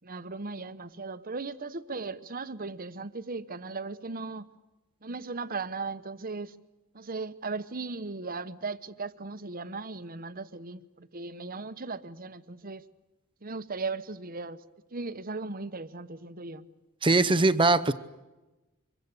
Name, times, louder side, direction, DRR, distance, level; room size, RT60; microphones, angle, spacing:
voice 1, 0.0-4.5 5.0-6.6 6.9-12.8 13.4-14.6 14.9-16.7, right 3 dB, 45° right, 12 dB, 1.1 m, -37 dB
voice 2, 17.0-17.9, right 3 dB, 25° right, 13 dB, 0.8 m, -21 dB
25.5 x 23.0 x 8.3 m, 1.1 s
head